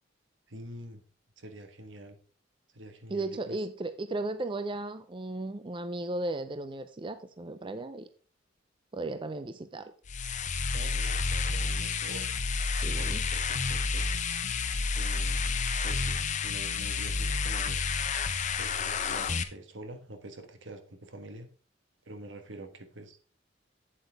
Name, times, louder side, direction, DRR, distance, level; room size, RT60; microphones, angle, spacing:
voice 1, 0.5-1.0 1.4-2.2 2.7-3.6 10.7-12.3 13.0-14.2 14.9-15.6 15.8-17.8 18.6-21.5 22.0-23.2, right 1 dB, 75° right, 7 dB, 1.3 m, -46 dB
voice 2, 3.1-8.1 8.9-9.9 12.8-13.2, right 2 dB, 25° right, 10 dB, 0.5 m, -35 dB
sound 1, 10.0-19.4, left 4 dB, 40° left, 0.7 m, -30 dB
8.6 x 7.9 x 3.5 m, 0.39 s
head